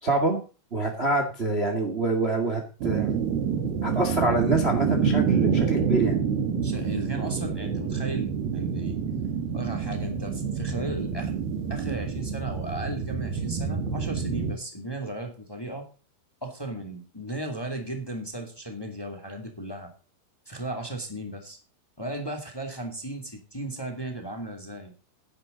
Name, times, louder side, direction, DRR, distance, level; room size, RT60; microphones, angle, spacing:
voice 1, 0.0-0.4 0.7-3.1 3.8-6.1, right 3 dB, 45° right, 4 dB, 0.7 m, -26 dB
sound 1, 2.8-14.5, right 6 dB, 70° right, 3.2 m, -27 dB
voice 2, 6.6-9.0 9.5-11.3 11.7-15.8 16.4-19.9 20.4-21.6 22.0-24.9, right 1 dB, 10° left, 4 dB, 1.4 m, -35 dB
11.5 x 10.5 x 3.9 m, 0.35 s
omnidirectional pair, 4.7 m